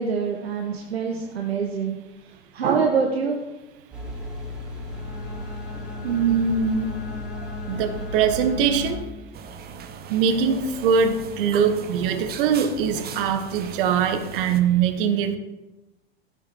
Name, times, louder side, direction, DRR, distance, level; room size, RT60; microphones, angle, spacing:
voice 1, 0.0-2.0 2.5-3.4, right 5 dB, 75° right, 2 dB, 1.5 m, -25 dB
sound 1, 3.9-8.9, left 2 dB, 5° right, 5.1 m, -34 dB
Bowed string instrument, 4.8-9.3, left 2 dB, 75° left, 2.0 m, -40 dB
voice 2, 6.0-6.9 7.7-9.0 10.1-15.4, right 6 dB, 55° right, 8 dB, 1.6 m, -22 dB
sound 2, 9.3-14.6, right 6 dB, 30° right, 1.2 m, -39 dB
16.0 x 7.6 x 4.7 m, 1.1 s
figure-of-eight pair, 90°, 32 cm